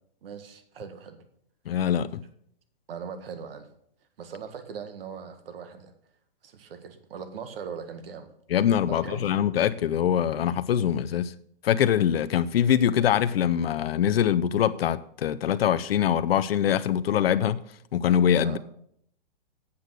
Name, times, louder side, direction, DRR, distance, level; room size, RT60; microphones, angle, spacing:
voice 1, 0.2-1.2 2.9-3.7 4.2-5.9 6.4-8.3 8.9-9.4 18.4-18.6, right 6 dB, 70° right, 1.7 m, -40 dB
voice 2, 1.7-2.2 8.5-11.3 11.6-17.6 17.9-18.6, left 9 dB, 80° left, 0.6 m, -23 dB
8.4 x 8.4 x 6.2 m
hypercardioid pair, 135°, 30 cm